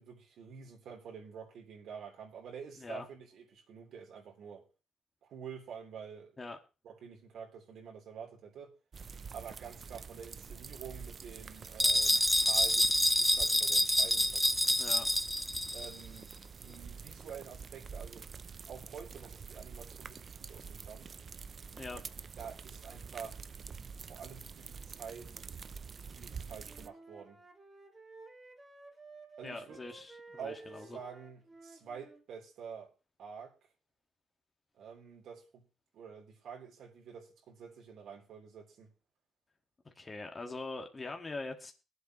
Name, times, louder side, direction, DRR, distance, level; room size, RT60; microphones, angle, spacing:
voice 1, 0.0-4.7 5.2-6.4 6.8-8.7 9.3-15.0 15.7-18.3 18.7-21.1 22.4-23.4 24.1-25.3 26.1-27.4 29.4-29.8 30.4-32.9 33.2-33.5 34.8-35.6 35.9-38.9, right 7 dB, 75° right, 3.7 m, -48 dB
sound 1, 8.9-26.9, right 6 dB, 45° right, 0.6 m, -47 dB
sound 2, 11.8-15.9, equal, 5° left, 0.5 m, -27 dB
Wind instrument woodwind instrument, 26.6-32.3, right 3 dB, 25° right, 2.3 m, -54 dB
voice 2, 29.4-31.0 40.0-41.7, left 3 dB, 25° left, 1.8 m, -42 dB
22.5 x 8.1 x 3.1 m
cardioid pair, 90°, 0 cm